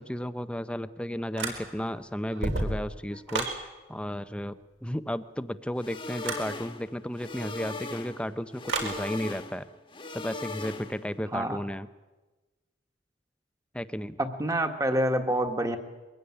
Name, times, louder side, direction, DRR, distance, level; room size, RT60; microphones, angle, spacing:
voice 1, 0.0-3.5 3.9-9.7 10.1-11.9 13.7-14.2, equal, 5° left, 12 dB, 0.6 m, -33 dB
sound 1, 1.4-1.9 2.3-3.6 6.2-6.5 8.7-9.0, right 2 dB, 75° right, 4.4 m, -31 dB
sound 2, 5.8-11.2, left 3 dB, 25° left, 1.4 m, -39 dB
voice 2, 11.3-11.6 14.2-15.8, right 1 dB, 15° right, 6 dB, 1.6 m, -27 dB
23.0 x 16.0 x 9.8 m, 1.2 s
head